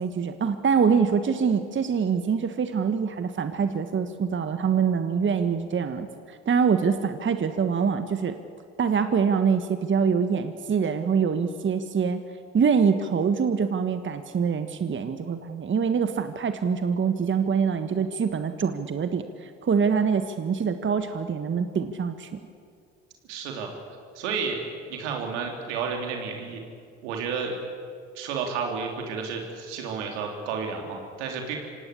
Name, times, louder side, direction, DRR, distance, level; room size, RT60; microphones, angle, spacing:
voice 1, 0.0-8.4 8.8-12.2 12.5-22.4, right 6 dB, 35° right, 9 dB, 1.5 m, -25 dB
voice 2, 23.3-23.7 24.2-24.6 24.9-26.6 27.0-27.6 28.2-31.6, right 5 dB, 80° right, 2 dB, 3.8 m, -31 dB
25.5 x 18.0 x 8.5 m, 2.2 s
hypercardioid pair, 60°, 35 cm